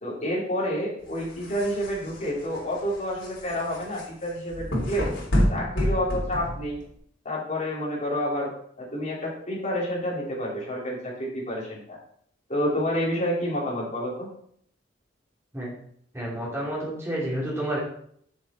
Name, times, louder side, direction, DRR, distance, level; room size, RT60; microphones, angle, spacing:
voice 1, 0.0-5.1 5.5-6.8 7.2-8.5 8.8-12.0 12.5-14.3, equal, 40° left, -4 dB, 3.1 m, -29 dB
sound 1, 1.1-7.0, equal, 85° left, 3.3 m, -29 dB
voice 2, 16.1-17.8, right 1 dB, 15° right, -5 dB, 3.2 m, -30 dB
7.3 x 7.0 x 4.3 m, 0.65 s
head